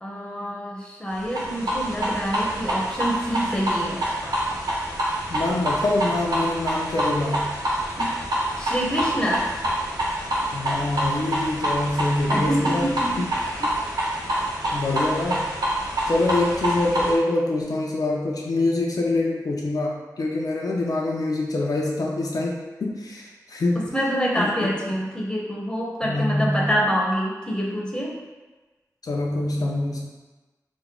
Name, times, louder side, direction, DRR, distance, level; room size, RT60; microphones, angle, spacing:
voice 1, 0.0-4.0 8.6-9.5 12.3-13.2 23.7-28.1, equal, 10° left, -3 dB, 0.8 m, -26 dB
sound 1, 1.2-17.1, right 1 dB, 90° right, 0.7 m, -26 dB
voice 2, 5.3-7.5 8.0-8.1 10.5-12.9 13.6-13.7 14.7-15.5 16.1-23.9 24.4-24.7 26.0-26.7 29.0-30.0, left 2 dB, 65° left, -2 dB, 0.4 m, -25 dB
3.0 x 2.1 x 3.7 m, 1.2 s
cardioid pair, 50°, 7 cm